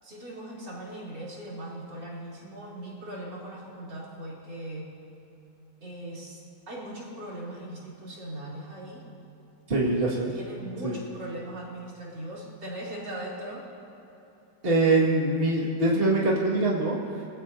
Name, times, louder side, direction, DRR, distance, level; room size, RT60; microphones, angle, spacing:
voice 1, 0.0-4.9 5.8-6.4 6.7-9.1 10.3-13.7, right 1 dB, 70° right, -6 dB, 4.1 m, -39 dB
voice 2, 9.7-10.3 10.8-10.9 14.6-17.2, right 2 dB, 30° right, -4 dB, 2.1 m, -24 dB
24.5 x 16.5 x 2.7 m, 3.0 s
omnidirectional pair, 1.9 m